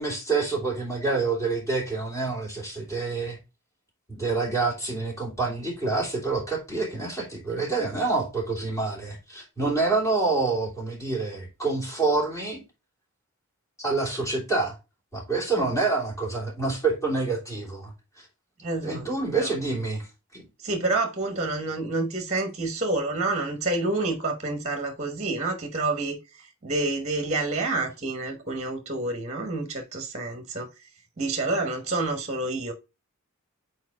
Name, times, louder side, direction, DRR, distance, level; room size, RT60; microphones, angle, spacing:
voice 1, 0.0-3.4 4.1-12.6 13.8-14.8 15.1-17.9 18.8-20.1 20.3-20.4, right 3 dB, 15° left, 2.9 m, -27 dB
voice 2, 18.6-19.1 19.4-19.6 20.6-30.7 31.2-32.7, right 2 dB, 30° right, 1.1 m, -28 dB
4.6 x 4.3 x 4.7 m
head